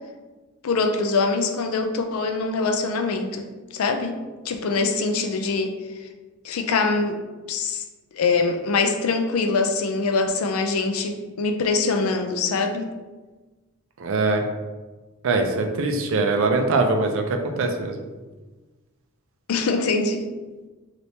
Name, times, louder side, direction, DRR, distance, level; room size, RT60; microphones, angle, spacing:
voice 1, 0.6-3.5 3.7-4.2 4.4-5.7 6.4-7.2 7.5-7.8 8.1-12.9 19.5-20.2, left 4 dB, 80° left, 5 dB, 0.4 m, -23 dB
voice 2, 14.0-14.5 15.2-18.0, right 3 dB, 65° right, 4 dB, 0.4 m, -22 dB
3.2 x 2.9 x 2.7 m, 1.3 s
head